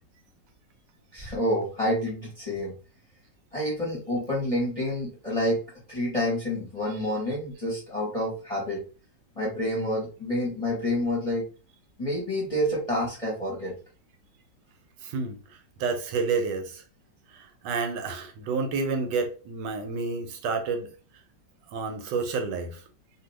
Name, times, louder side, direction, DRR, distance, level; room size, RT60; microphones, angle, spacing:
voice 1, 1.1-2.7 3.5-5.6 5.9-8.8 9.4-11.4 12.0-13.7, left 1 dB, 25° left, 1.0 m, -28 dB
voice 2, 15.0-15.4 15.8-16.8 17.3-20.9 21.7-22.8, right 4 dB, 80° right, 1.2 m, -29 dB
2.7 x 2.6 x 3.2 m
omnidirectional pair, 2.0 m